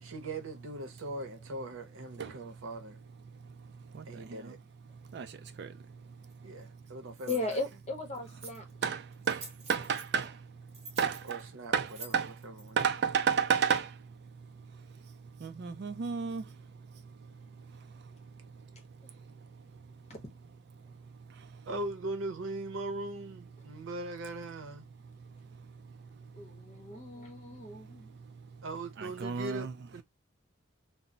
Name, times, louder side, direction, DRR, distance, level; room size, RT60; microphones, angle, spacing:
voice 1, 0.0-3.0 4.0-4.6 6.4-7.6 11.3-11.7 12.0-12.8 21.7-24.9 28.6-30.0, right 2 dB, 80° right, 0.7 m, -40 dB
voice 2, 3.9-4.5 5.1-5.7 8.8-10.4 11.0-11.5 11.7-12.4 12.8-14.0 15.4-16.5 29.0-29.7, right 6 dB, 55° right, 0.3 m, -31 dB
sound 1, 6.3-6.4 7.1-7.6 8.1-8.7 9.1-10.3 10.7-12.8, right 3 dB, 30° right, 1.0 m, -48 dB
voice 3, 7.3-8.6 20.1-20.2 26.4-26.5 26.7-28.1, left 3 dB, 35° left, 0.8 m, -36 dB
2.1 x 2.0 x 3.8 m
head